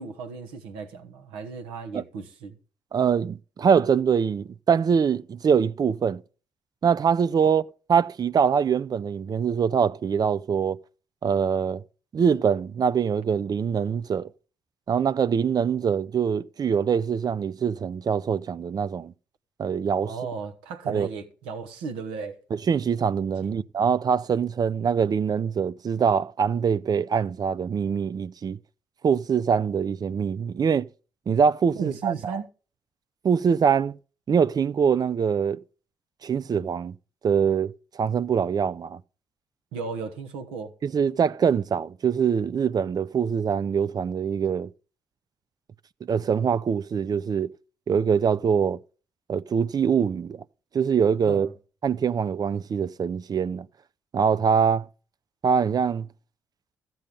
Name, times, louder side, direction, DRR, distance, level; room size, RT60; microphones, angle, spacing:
voice 1, 0.0-2.6 20.0-22.4 23.4-23.6 31.7-32.4 39.7-40.7 51.2-51.5, right 5 dB, 80° right, 1.3 m, -35 dB
voice 2, 2.9-6.2 6.8-7.6 7.9-10.8 11.2-11.8 12.1-14.3 14.9-19.1 19.6-20.1 20.9-21.1 22.7-28.6 29.0-30.9 31.3-32.4 33.2-34.0 34.3-35.6 36.2-36.9 37.2-39.0 40.8-44.7 46.0-47.5 47.9-48.8 49.3-50.4 50.7-51.5 51.8-53.7 54.1-54.9 55.4-56.1, right 7 dB, 45° right, 0.5 m, -23 dB
14.0 x 7.8 x 5.2 m
hypercardioid pair, 40°, 9 cm